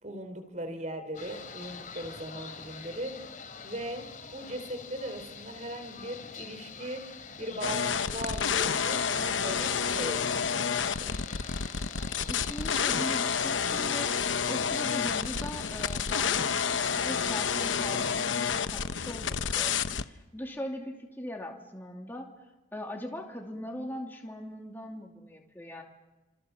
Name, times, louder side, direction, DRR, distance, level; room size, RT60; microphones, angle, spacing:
voice 1, 0.0-3.1 3.6-4.1 4.3-7.0 7.4-11.1, right 1 dB, 40° right, 8 dB, 4.3 m, -39 dB
sound 1, 1.1-18.2, left 5 dB, 45° left, 3.4 m, -45 dB
sound 2, 7.6-20.0, left 6 dB, 85° left, 0.9 m, -29 dB
voice 2, 12.2-22.3 22.7-25.8, left 1 dB, 10° left, 0 dB, 2.7 m, -40 dB
30.0 x 27.0 x 7.2 m, 1.1 s
head